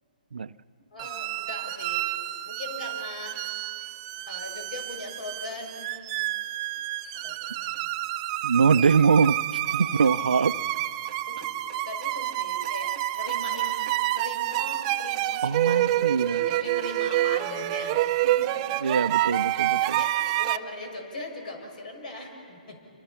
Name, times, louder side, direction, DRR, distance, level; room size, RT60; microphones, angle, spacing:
voice 1, 0.9-2.0 2.5-3.4 3.8-3.9 4.3-5.9 7.2-7.9 9.7-9.9 11.3-18.7 19.4-22.8, left 2 dB, 70° left, 3 dB, 6.1 m, -40 dB
sound 1, 1.0-20.6, right 15 dB, 35° right, 0.7 m, -28 dB
voice 2, 8.4-9.4 9.7-10.5 15.4-16.4 18.8-20.0, right 5 dB, 85° right, 15 dB, 0.6 m, -23 dB
28.0 x 25.0 x 5.8 m, 2.5 s
hypercardioid pair, 140°, 5 cm